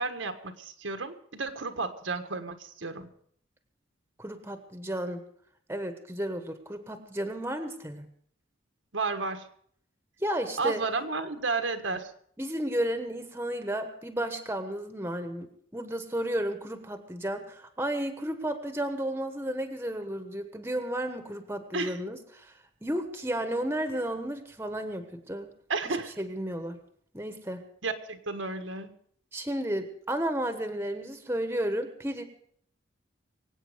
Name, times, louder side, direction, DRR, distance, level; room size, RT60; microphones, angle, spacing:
voice 1, 0.0-3.1 8.9-9.5 10.6-12.1 21.7-22.0 25.7-26.1 27.8-28.9, right 4 dB, 80° right, 7 dB, 1.5 m, -32 dB
voice 2, 4.2-5.2 5.7-8.1 10.2-10.8 12.4-22.5 22.8-25.5 26.2-26.8 27.1-27.6 29.3-32.2, right 1 dB, 10° right, 7 dB, 1.2 m, -33 dB
23.5 x 8.7 x 5.1 m, 0.62 s
head